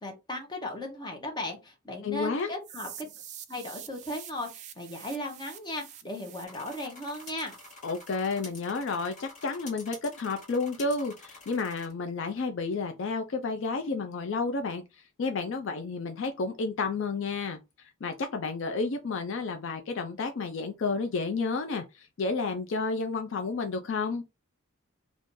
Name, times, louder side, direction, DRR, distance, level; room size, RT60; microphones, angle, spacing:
voice 1, 0.0-3.1 3.5-7.5, left 1 dB, 20° left, 0.7 m, -37 dB
voice 2, 2.0-2.5 7.8-14.8 15.2-17.6 18.0-24.2, left 4 dB, 55° left, 0.4 m, -31 dB
sound 1, 2.6-8.6, right 10 dB, 35° right, 0.3 m, -47 dB
sound 2, 6.4-11.9, left 2 dB, 35° left, 1.2 m, -48 dB
2.6 x 2.4 x 3.6 m
head